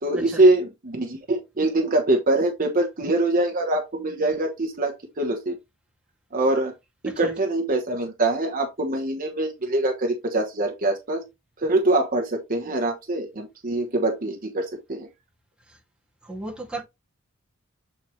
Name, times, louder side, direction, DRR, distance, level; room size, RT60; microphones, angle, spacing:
voice 1, 0.0-5.6 6.3-6.7 7.1-11.3 11.6-15.1, right 2 dB, 45° right, 1.2 m, -23 dB
voice 2, 16.2-16.8, right 2 dB, 5° right, 2.3 m, -34 dB
7.8 x 4.6 x 3.2 m
head